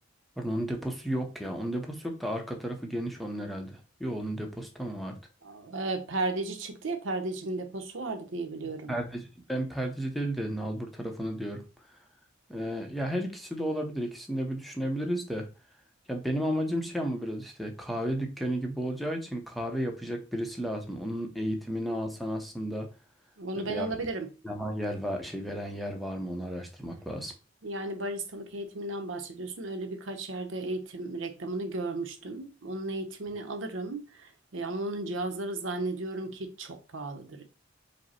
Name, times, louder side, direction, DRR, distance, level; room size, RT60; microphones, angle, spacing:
voice 1, 0.4-5.1 8.9-11.6 12.5-15.5 16.1-22.9 23.5-23.9 24.4-27.3, equal, ahead, 0.6 m, -33 dB
voice 2, 5.4-8.9 23.4-24.3 27.6-37.4, right 2 dB, 80° right, 0.7 m, -34 dB
5.1 x 2.0 x 4.2 m
head